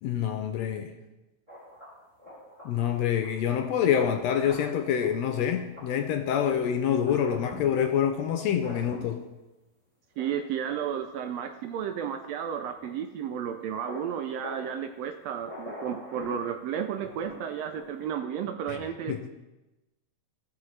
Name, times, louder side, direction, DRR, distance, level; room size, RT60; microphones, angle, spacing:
voice 1, 0.0-0.9 2.6-9.2 18.7-18.8 19.1-19.3, left 9 dB, 75° left, 1.6 m, -26 dB
sound 1, 1.5-2.9 3.2-3.3 3.9-6.7 7.0-7.7 8.3-9.2 10.2-10.5 12.8-13.0 13.5-13.6 13.8-14.8 15.4-17.9, left 1 dB, 10° right, 2.9 m, -44 dB
voice 2, 10.2-19.3, right 8 dB, 80° right, 1.6 m, -33 dB
15.5 x 5.9 x 3.2 m
omnidirectional pair, 3.3 m